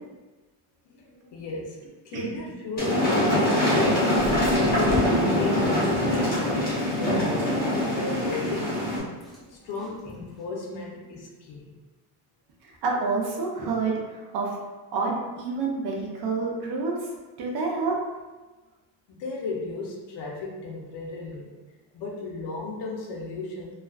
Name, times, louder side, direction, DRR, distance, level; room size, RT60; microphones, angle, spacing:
voice 1, 0.8-1.8 2.0-7.5 8.0-11.7 19.1-21.5 21.9-23.7, left 3 dB, 60° left, -2 dB, 0.6 m, -35 dB
sound 1, 2.8-9.0, left 1 dB, 20° left, 0.7 m, -23 dB
sound 2, 4.1-10.4, equal, ahead, 0.3 m, -39 dB
voice 2, 12.6-14.6 14.9-17.1 17.4-18.0, right 4 dB, 55° right, -1 dB, 0.6 m, -28 dB
2.4 x 2.3 x 2.3 m, 1.2 s
cardioid pair, 165°, 47 cm